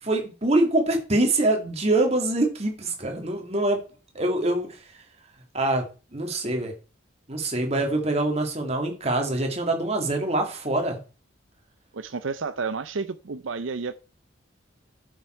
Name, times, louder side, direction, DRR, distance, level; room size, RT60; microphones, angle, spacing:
voice 1, 0.0-3.8 4.1-4.8 5.5-5.9 6.1-6.7 7.3-11.0, right 2 dB, 35° right, 2.3 m, -24 dB
voice 2, 11.9-13.9, right 4 dB, 80° right, 0.6 m, -31 dB
11.0 x 7.3 x 4.5 m
head